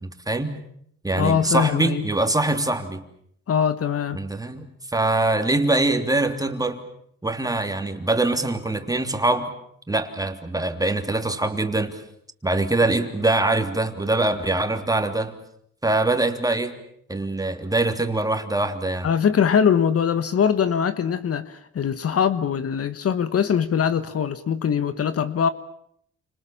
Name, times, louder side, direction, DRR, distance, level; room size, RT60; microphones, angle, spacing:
voice 1, 0.0-0.6 1.0-3.0 4.1-4.7 4.9-6.8 7.2-9.5 9.9-12.0 12.4-15.3 15.8-16.7 17.1-19.1, right 2 dB, 10° right, 7 dB, 3.3 m, -23 dB
voice 2, 1.1-2.0 3.5-4.2 19.0-25.5, left 7 dB, 50° left, 13 dB, 1.4 m, -22 dB
29.5 x 26.5 x 7.3 m, 0.69 s
cardioid pair, 90°, 30 cm